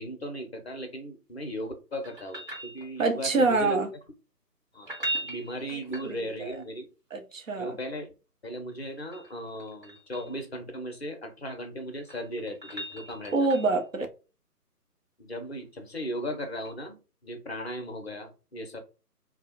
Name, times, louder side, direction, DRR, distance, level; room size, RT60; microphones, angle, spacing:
voice 1, 0.0-3.8 4.7-4.9 5.2-6.9 7.6-8.1 8.4-13.3 15.2-18.8, equal, 45° left, 0.5 m, -37 dB
sound 1, 2.0-3.3 4.7-6.6 8.7-10.4 11.8-13.9 16.6-16.7, right 1 dB, 35° right, 1.0 m, -39 dB
voice 2, 3.0-3.9 5.7-6.6 7.1-7.8 13.3-14.1, right 3 dB, 55° right, 0.6 m, -26 dB
2.3 x 2.0 x 2.8 m
figure-of-eight pair, 155°, 47 cm